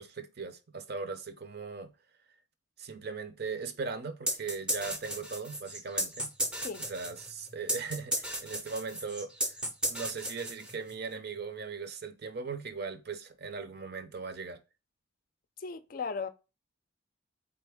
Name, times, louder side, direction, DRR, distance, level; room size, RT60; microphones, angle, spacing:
voice 1, 0.0-1.9 2.8-6.3 6.8-9.6 9.9-14.6, right 4 dB, 50° right, 0.6 m, -39 dB
sound 1, 4.3-11.0, right 1 dB, 5° right, 0.5 m, -34 dB
voice 2, 15.6-16.3, left 5 dB, 45° left, 0.4 m, -36 dB
4.1 x 3.4 x 3.4 m
head